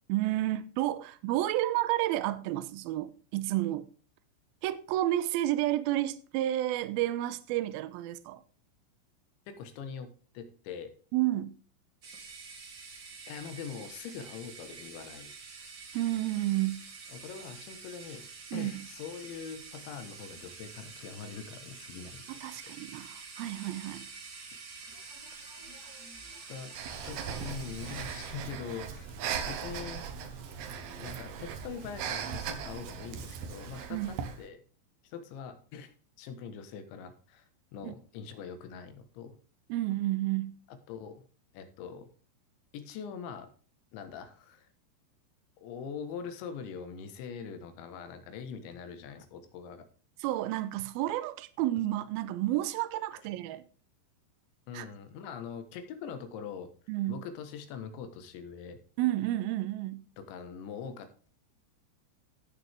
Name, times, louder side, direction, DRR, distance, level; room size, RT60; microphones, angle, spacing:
voice 1, 0.1-3.9 4.6-8.4 11.1-11.6 15.9-16.9 18.5-18.9 22.3-24.1 33.9-34.2 37.8-37.9 39.7-40.6 50.2-53.6 54.7-54.9 56.9-57.2 59.0-60.1, right 15 dB, 85° right, 2.2 m, -31 dB
voice 2, 9.5-10.9 12.2-12.3 13.3-15.3 17.1-22.3 26.5-26.7 27.0-29.2 29.5-30.0 30.8-34.6 35.0-35.9 36.2-37.5 37.7-39.4 40.9-41.2 41.5-42.1 42.7-43.5 43.9-44.7 45.6-49.8 54.7-56.7 57.1-58.8 60.2-61.3, left 6 dB, 85° left, 3.7 m, -43 dB
sound 1, 12.0-28.3, right 4 dB, 45° right, 1.4 m, -47 dB
sound 2, 24.9-32.1, equal, 5° left, 2.8 m, -58 dB
Breathing, 26.8-34.4, right 7 dB, 70° right, 2.8 m, -38 dB
15.0 x 6.9 x 3.5 m
omnidirectional pair, 5.1 m